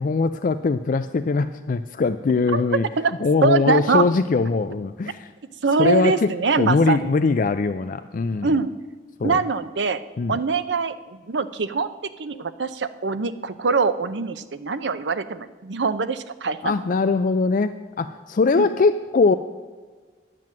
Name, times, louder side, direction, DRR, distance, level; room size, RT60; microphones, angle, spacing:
voice 1, 0.0-2.9 3.2-5.3 5.8-6.3 6.6-8.5 9.2-9.4 10.2-10.4 16.6-19.4, left 4 dB, 50° left, 10 dB, 0.4 m, -21 dB
voice 2, 3.4-4.0 5.6-7.1 8.4-8.7 9.2-10.0 10.3-11.9 12.2-16.7 18.6-18.7, right 4 dB, 80° right, 12 dB, 0.6 m, -23 dB
10.5 x 7.7 x 7.5 m, 1.5 s
head